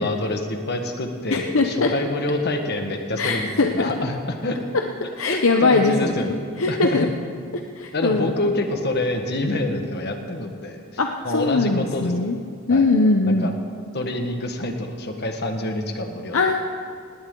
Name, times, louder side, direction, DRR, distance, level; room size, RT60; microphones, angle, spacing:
voice 1, 0.0-4.6 5.3-6.4 6.7-7.1 7.9-10.8 11.2-12.1 12.7-12.8 13.2-13.6 13.9-16.4, left 2 dB, 50° left, 4 dB, 1.6 m, -26 dB
voice 2, 1.3-1.9 3.2-3.9 5.2-7.1 7.8-8.3 11.0-12.4 12.7-13.5 16.3-16.6, left 3 dB, 70° left, 3 dB, 0.8 m, -21 dB
18.5 x 18.5 x 3.9 m, 2.2 s
head